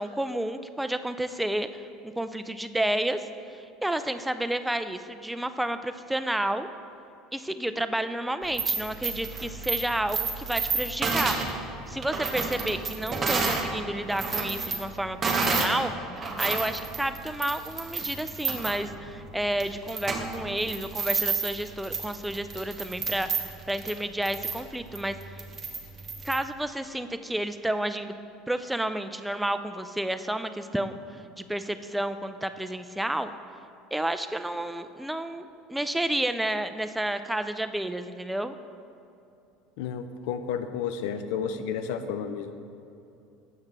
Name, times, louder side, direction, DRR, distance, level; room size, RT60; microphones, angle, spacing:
voice 1, 0.0-6.7 7.3-11.4 11.9-25.4 26.2-28.1 28.5-30.9 31.4-33.3 33.9-38.6, right 1 dB, 5° right, 10 dB, 0.3 m, -31 dB
sound 1, 8.4-13.7 14.0-15.8 16.1-26.4, right 4 dB, 30° right, 0.8 m, -31 dB
voice 2, 39.8-42.5, left 7 dB, 70° left, 9 dB, 0.4 m, -31 dB
7.1 x 5.6 x 3.3 m, 2.7 s
hypercardioid pair, 85°, 0 cm